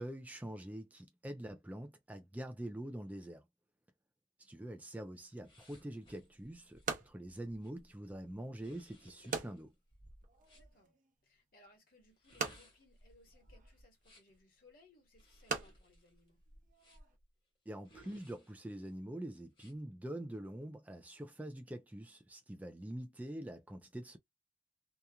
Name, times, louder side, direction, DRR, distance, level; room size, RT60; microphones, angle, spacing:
voice 1, 0.0-3.4 4.4-9.7 17.7-24.2, right 1 dB, 10° right, 0.3 m, -45 dB
sound 1, 5.4-10.7 12.1-14.4 15.1-17.2 17.8-18.9 19.5-19.7, equal, 30° left, 1.1 m, -62 dB
sound 2, 5.8-17.2, right 4 dB, 45° right, 0.7 m, -46 dB
voice 2, 10.5-10.9 11.2-16.4 23.0-23.2, left 2 dB, 55° left, 1.3 m, -66 dB
2.8 x 2.3 x 2.3 m
head